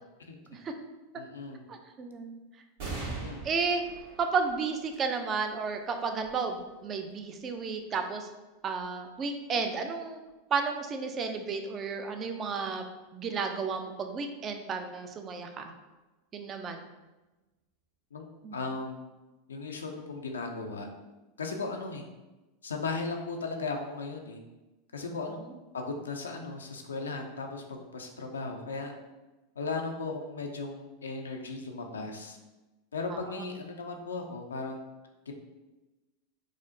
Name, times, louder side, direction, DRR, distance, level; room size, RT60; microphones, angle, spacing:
voice 1, 1.1-1.6 3.1-3.4 18.1-18.3 18.5-19.0 19.5-20.9 21.4-22.0 22.6-24.4 24.9-25.4 25.7-28.9 29.6-32.4 32.9-34.9 35.3-35.4, left 3 dB, 85° left, 3 dB, 0.4 m, -36 dB
voice 2, 1.7-2.3 3.4-3.8 4.2-8.3 8.6-10.2 10.5-12.8 13.1-15.6 16.3-16.9 18.4-18.6 33.1-33.4, right 5 dB, 35° right, 6 dB, 0.4 m, -32 dB
sound 1, 2.8-9.7 10.3-10.4 11.5-12.1, right 3 dB, 65° right, 1.4 m, -45 dB
4.8 x 2.1 x 2.6 m, 1.1 s
hypercardioid pair, 90°, 0 cm